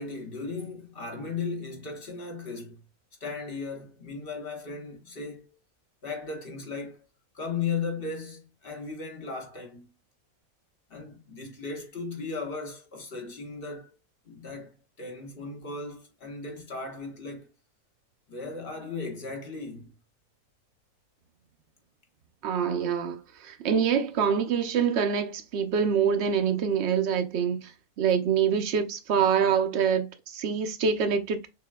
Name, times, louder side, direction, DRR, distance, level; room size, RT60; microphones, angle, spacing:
voice 1, 0.0-2.8 3.2-5.6 6.0-7.0 7.3-9.9 10.9-13.9 14.2-17.5 18.3-19.9, left 4 dB, 45° left, 1.0 m, -36 dB
voice 2, 22.4-27.7 28.0-31.5, right 7 dB, 60° right, 0.7 m, -25 dB
6.4 x 2.2 x 2.2 m
omnidirectional pair, 1.6 m